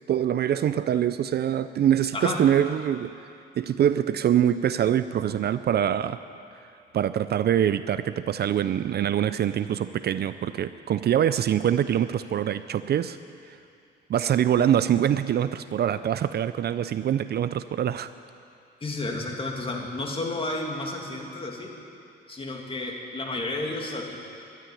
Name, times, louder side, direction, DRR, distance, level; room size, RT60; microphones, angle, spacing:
voice 1, 0.1-3.1 3.6-6.2 6.9-13.2 13.5-13.6 14.1-18.1, right 10 dB, 55° right, 13 dB, 0.5 m, -24 dB
voice 2, 2.1-2.5 18.8-21.7 22.3-24.2, left 2 dB, 25° left, 0 dB, 2.7 m, -31 dB
13.0 x 11.5 x 10.0 m, 2.6 s
cardioid pair, 90°, 20 cm